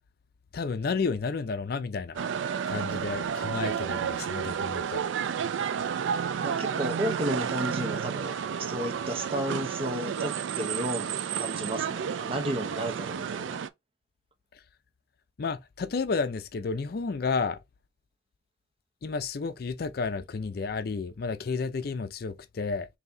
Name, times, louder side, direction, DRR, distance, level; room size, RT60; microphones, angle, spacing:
voice 1, 0.5-2.2 2.7-5.0 15.4-17.6 19.0-22.9, left 4 dB, 55° left, 0.4 m, -31 dB
sound 1, 2.1-13.7, right 7 dB, 85° right, 0.4 m, -31 dB
voice 2, 6.4-13.6, equal, 30° right, 0.7 m, -33 dB
4.0 x 2.8 x 3.3 m
head